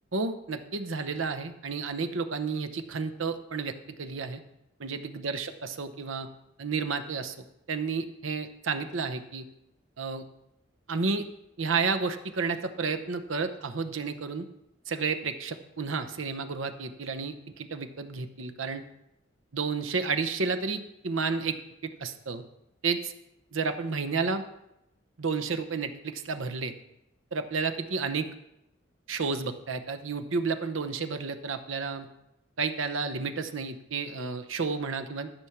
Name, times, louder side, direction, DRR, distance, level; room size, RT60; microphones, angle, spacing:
voice 1, 0.1-4.4 4.8-6.3 6.6-9.5 10.0-10.2 10.9-11.3 11.6-14.5 14.9-18.8 19.5-21.6 22.0-22.4 22.8-23.1 23.5-24.4 25.2-26.7 27.3-28.3 29.1-32.1 32.6-35.3, right 4 dB, 75° right, 7 dB, 0.9 m, -31 dB
13.0 x 6.2 x 5.8 m, 0.85 s
head